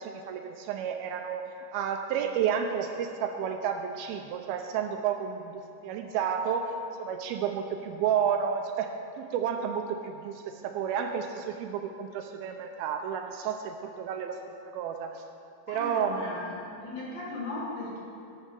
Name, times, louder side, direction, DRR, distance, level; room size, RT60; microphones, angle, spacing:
voice 1, 0.0-6.7 7.0-8.9 9.2-14.4 14.7-15.2 15.7-16.4, right 7 dB, 80° right, 5 dB, 2.3 m, -31 dB
voice 2, 15.7-18.0, left 2 dB, 65° left, -6 dB, 4.0 m, -37 dB
13.5 x 12.0 x 3.4 m, 2.5 s
omnidirectional pair, 4.6 m